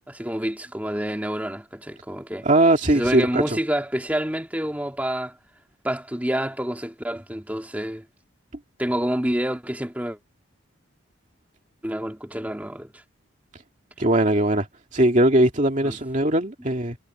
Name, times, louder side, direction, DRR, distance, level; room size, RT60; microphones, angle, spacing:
voice 1, 0.1-2.5 2.9-5.3 5.8-8.0 8.8-10.2 11.8-12.9 15.8-16.0, equal, 5° right, 2.6 m, -28 dB
voice 2, 2.4-3.6 14.0-14.7 14.9-17.0, right 1 dB, 35° right, 2.4 m, -20 dB
head